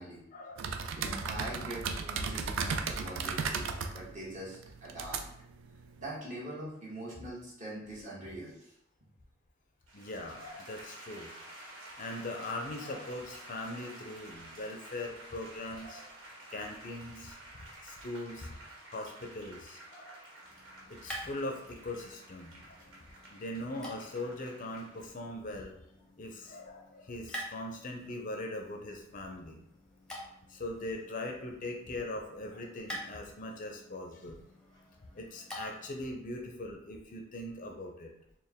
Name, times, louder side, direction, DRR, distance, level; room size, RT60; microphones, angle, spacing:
voice 1, 0.3-0.8 9.9-11.3 12.0-16.1 16.5-17.4 17.8-18.5 18.9-20.2 20.9-22.6 23.3-25.7 26.2-29.6 30.5-34.4 35.1-38.1, left 1 dB, 40° left, 2 dB, 0.5 m, -40 dB
sound 1, 0.6-6.2, right 5 dB, 70° right, 0.4 m, -36 dB
voice 2, 0.9-5.3 6.0-8.7, right 1 dB, 40° right, -6 dB, 1.3 m, -43 dB
sound 2, 9.9-25.1, right 1 dB, 90° right, 1.2 m, -51 dB
sound 3, 20.4-36.0, equal, 5° left, 0.7 m, -49 dB
4.3 x 2.2 x 3.5 m, 0.75 s
head